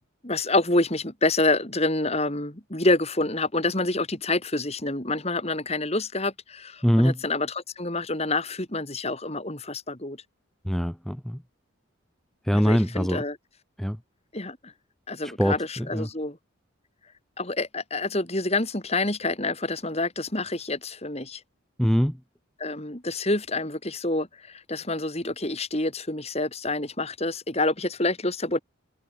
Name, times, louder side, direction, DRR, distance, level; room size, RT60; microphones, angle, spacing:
voice 1, 0.2-10.2 12.5-13.4 14.3-14.7 15.1-16.4 17.4-21.4 22.6-28.6, left 2 dB, 30° left, 3.1 m, -27 dB
voice 2, 6.8-7.2 10.6-11.4 12.4-13.2 13.8-14.0 15.2-16.1 21.8-22.2, equal, ahead, 0.6 m, -23 dB
head